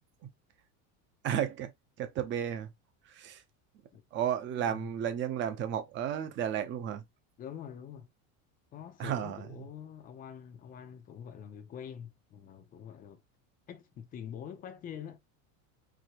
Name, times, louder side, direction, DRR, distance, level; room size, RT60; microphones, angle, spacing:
voice 1, 1.2-1.7 2.0-2.7 3.1-3.4 4.1-7.0 9.0-9.5, right 9 dB, 30° right, 0.8 m, -33 dB
voice 2, 4.5-4.9 7.4-8.1 8.7-13.2 13.7-15.2, left 8 dB, 20° left, 0.6 m, -45 dB
4.8 x 3.3 x 3.0 m
cardioid pair, 170°, 40 cm